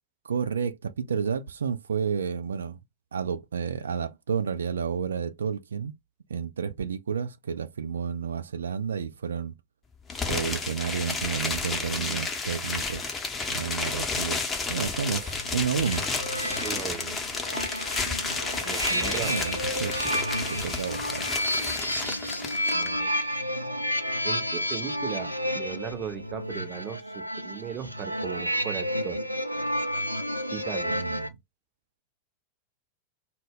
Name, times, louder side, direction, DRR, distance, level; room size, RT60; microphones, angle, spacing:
voice 1, 0.2-2.8 3.1-5.9 6.3-9.5 10.2-13.2 13.5-16.0 19.2-20.2 20.5-21.3 30.9-31.3, right 6 dB, 70° right, 0.3 m, -31 dB
sound 1, 10.1-22.9, left 4 dB, 15° left, 0.7 m, -31 dB
sound 2, 14.7-31.3, equal, 90° left, 0.3 m, -31 dB
voice 2, 16.6-17.2 18.6-19.4 22.7-23.1 24.2-29.2 30.5-31.0, right 10 dB, 30° right, 0.6 m, -37 dB
2.1 x 2.0 x 3.5 m
figure-of-eight pair, 90°, 0 cm